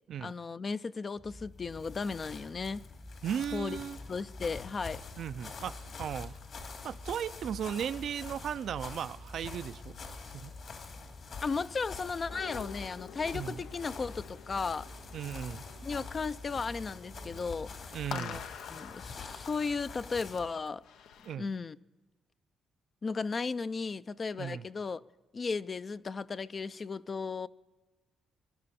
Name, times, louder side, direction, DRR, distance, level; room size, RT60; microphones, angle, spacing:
voice 1, 0.2-2.8 3.5-3.8 4.1-5.0 11.4-14.9 15.8-17.7 18.1-20.8 21.4-21.8 23.0-25.0 25.3-27.5, left 4 dB, 35° left, 0.4 m, -35 dB
sound 1, 1.1-18.1, left 1 dB, ahead, 0.7 m, -50 dB
sound 2, 1.5-20.5, left 5 dB, 60° left, 2.7 m, -46 dB
voice 2, 3.2-4.0 5.2-6.3 6.8-10.0 10.3-10.5 13.3-13.6 15.1-15.6 17.9-18.4 21.2-21.5 24.4-24.7, right 9 dB, 65° right, 0.4 m, -36 dB
sound 3, 12.3-21.4, left 8 dB, 80° left, 0.7 m, -48 dB
24.0 x 11.5 x 4.2 m
cardioid pair, 90°, 0 cm